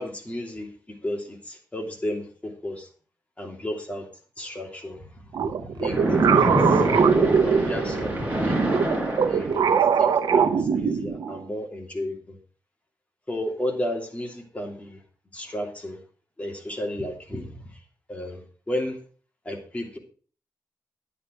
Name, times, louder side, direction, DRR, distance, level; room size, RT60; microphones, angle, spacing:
voice 1, 0.0-2.9 3.4-4.1 4.4-6.9 7.2-8.6 9.3-12.4 13.3-15.0 15.3-16.0 16.4-17.8 18.1-19.0 19.4-20.0, left 1 dB, 20° left, 2 dB, 2.8 m, -33 dB
sound 1, 5.3-8.1 8.7-11.4, right 7 dB, 85° right, 0.9 m, -22 dB
Splash splatter, 5.8-9.9, right 1 dB, 20° right, 4.4 m, -25 dB
10.0 x 9.6 x 4.6 m, 0.41 s
wide cardioid pair, 110°, 7 cm